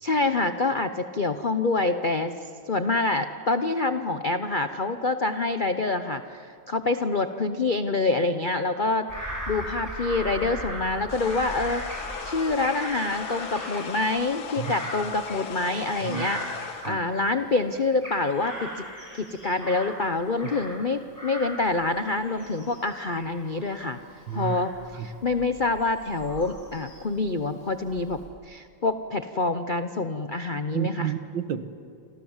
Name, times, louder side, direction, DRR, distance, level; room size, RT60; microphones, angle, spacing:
voice 1, 0.0-2.4 2.7-9.1 9.5-16.4 16.8-18.8 19.1-24.0 24.3-31.1, left 3 dB, 55° left, 9 dB, 0.5 m, -26 dB
Bird vocalization bird call bird song / Crow, 9.1-17.4 17.8-20.9 21.2-27.2 27.7-28.3, equal, 15° left, 7.6 m, -38 dB
sound 1, 11.1-16.9, left 7 dB, 80° left, 2.1 m, -38 dB
voice 2, 24.3-24.6 25.0-25.1 30.7-31.7, right 9 dB, 70° right, 11 dB, 1.8 m, -30 dB
29.0 x 26.0 x 7.3 m, 2.5 s
omnidirectional pair, 2.2 m